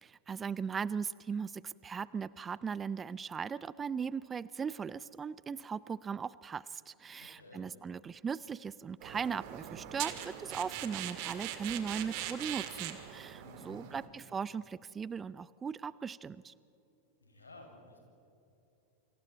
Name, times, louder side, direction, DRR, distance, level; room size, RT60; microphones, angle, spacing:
voice 1, 0.0-16.5, right 6 dB, 20° right, 20 dB, 0.5 m, -38 dB
voice 2, 7.2-7.6 13.3-14.1 17.2-18.0, left 2 dB, 75° left, 1 dB, 6.1 m, -54 dB
sound 1, 9.0-14.1, right 11 dB, 45° right, 1.9 m, -41 dB
29.0 x 26.5 x 4.3 m, 2.9 s
figure-of-eight pair, 90°, 0 cm